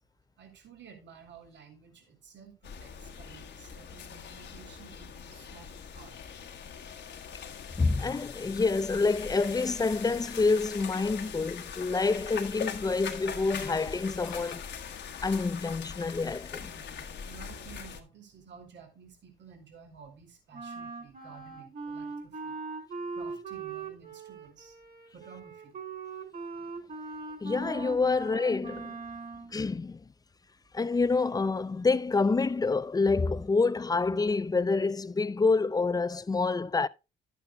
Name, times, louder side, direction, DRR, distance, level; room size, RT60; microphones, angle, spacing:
voice 1, 0.4-6.2 16.6-22.6 23.1-24.8 25.1-25.8, right 6 dB, 65° right, 2.7 m, -52 dB
sound 1, 2.6-18.0, left 7 dB, 65° left, 1.5 m, -41 dB
voice 2, 7.8-14.6 15.2-16.6 27.4-29.0 29.5-30.0 30.7-36.9, left 4 dB, 20° left, 0.5 m, -27 dB
Wind instrument woodwind instrument, 20.5-29.5, right 4 dB, 45° right, 3.9 m, -40 dB
11.0 x 9.1 x 2.3 m
cardioid pair, 90°, 20 cm